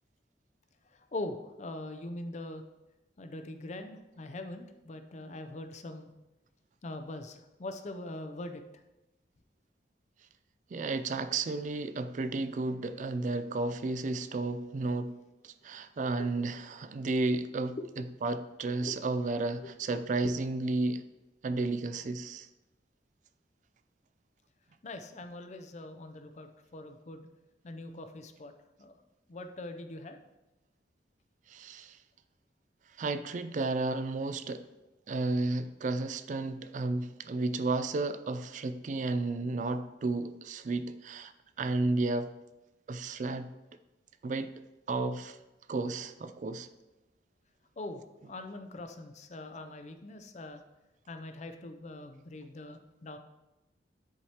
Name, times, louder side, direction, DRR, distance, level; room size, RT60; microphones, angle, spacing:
voice 1, 1.1-2.6 3.2-6.1 6.8-8.6 16.2-16.3 17.8-17.9 18.8-18.9 19.6-19.7 24.8-27.3 27.6-28.5 28.8-28.9 29.3-30.2 47.8-50.6 51.1-53.2, left 2 dB, 40° left, 8 dB, 0.5 m, -42 dB
voice 2, 10.7-15.2 15.4-17.8 18.2-21.0 21.4-22.5 31.5-32.0 33.0-34.7 35.1-41.3 41.6-42.3 42.9-43.5 44.2-44.5 44.9-45.4 45.7-46.7, right 3 dB, 45° right, 11 dB, 0.3 m, -32 dB
10.0 x 4.7 x 2.9 m, 1.0 s
head